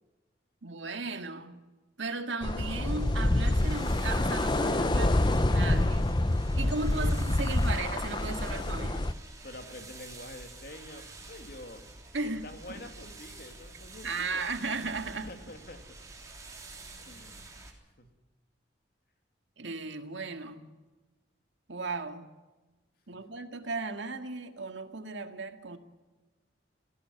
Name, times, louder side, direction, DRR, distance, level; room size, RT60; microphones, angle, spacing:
voice 1, 0.6-1.6 2.0-6.1 6.5-9.1 12.1-12.8 14.0-15.3 19.6-20.7 21.7-22.3 23.1-25.8, right 3 dB, 75° right, 1.9 m, -36 dB
sound 1, 2.4-9.1, left 1 dB, 25° left, 0.7 m, -27 dB
sound 2, 2.8-17.7, right 2 dB, 20° right, 3.5 m, -48 dB
voice 2, 9.4-11.8 12.2-14.4 15.2-16.0 17.0-17.5 18.0-18.1, left 1 dB, 55° left, 2.6 m, -47 dB
18.5 x 16.5 x 9.5 m
head